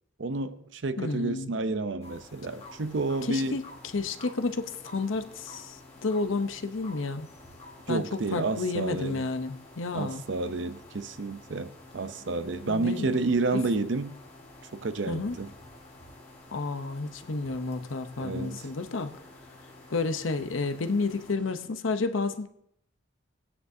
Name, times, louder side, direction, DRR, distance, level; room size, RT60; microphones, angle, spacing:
voice 1, 0.2-3.6 7.9-9.2 9.9-14.1 14.7-15.5 18.2-18.6, right 3 dB, 65° right, 0.6 m, -30 dB
voice 2, 1.0-1.5 3.2-3.6 3.9-7.3 7.9-10.2 12.7-13.6 15.1-15.4 16.5-19.1 19.9-22.5, left 3 dB, 75° left, 0.8 m, -31 dB
sound 1, 2.0-21.3, left 2 dB, 30° left, 1.5 m, -52 dB
sound 2, 2.5-21.6, left 2 dB, 10° left, 2.1 m, -55 dB
18.5 x 9.7 x 2.7 m
head